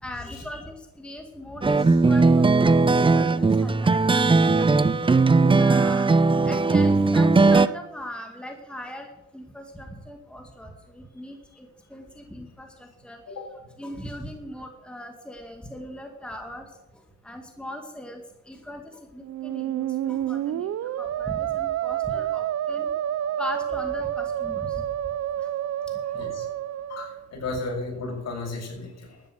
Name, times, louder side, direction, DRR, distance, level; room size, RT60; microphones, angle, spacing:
voice 1, 0.0-4.7 5.6-6.1 6.5-9.1 9.3-13.2 13.8-16.7 17.2-18.2 18.5-20.7 21.0-22.9 23.4-24.9 26.1-26.2, left 1 dB, 5° left, 3 dB, 2.2 m, -39 dB
sound 1, 1.6-7.7, right 3 dB, 15° right, 0.6 m, -18 dB
Musical instrument, 19.2-27.3, right 11 dB, 60° right, 0.6 m, -29 dB
voice 2, 26.1-26.4 26.9-29.2, left 3 dB, 60° left, 0 dB, 6.9 m, -34 dB
12.5 x 10.0 x 8.0 m, 0.94 s
cardioid pair, 90°, 30 cm